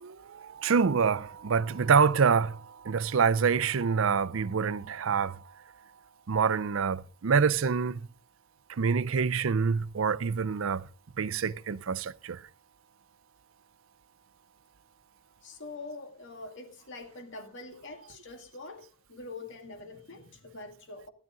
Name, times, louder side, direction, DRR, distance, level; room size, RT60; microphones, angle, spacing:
voice 1, 0.0-5.4 6.3-8.0 8.8-10.9 11.2-12.4, right 6 dB, 70° right, 0.5 m, -26 dB
voice 2, 15.4-21.1, left 3 dB, 65° left, 2.2 m, -44 dB
13.5 x 12.5 x 3.8 m
head